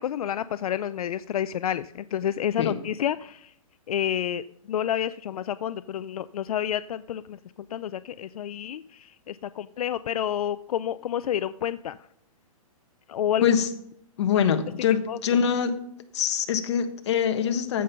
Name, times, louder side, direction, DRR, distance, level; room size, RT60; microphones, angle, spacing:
voice 1, 0.0-3.5 3.9-7.4 7.7-12.0 13.1-13.4 15.1-15.2, left 10 dB, 80° left, 15 dB, 0.4 m, -29 dB
voice 2, 14.2-15.7 16.1-17.8, left 8 dB, 50° left, 8 dB, 1.3 m, -24 dB
15.0 x 5.4 x 5.7 m, 0.78 s
hypercardioid pair, 155°, 18 cm